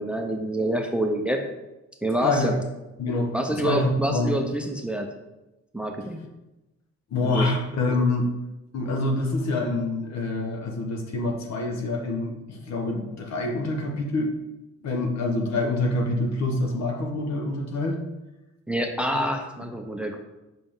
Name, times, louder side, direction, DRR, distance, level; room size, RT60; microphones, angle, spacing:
voice 1, 0.0-1.4 2.0-2.6 3.3-5.1 5.7-6.2 7.2-7.5 18.7-20.2, right 1 dB, 5° right, 4 dB, 0.7 m, -27 dB
voice 2, 2.2-2.5 3.0-4.3 7.1-8.3 8.7-14.3 14.8-18.0 19.1-19.2 19.6-19.7, left 2 dB, 60° left, 2 dB, 1.4 m, -26 dB
5.3 x 5.0 x 3.8 m, 0.99 s
cardioid pair, 90°, 30 cm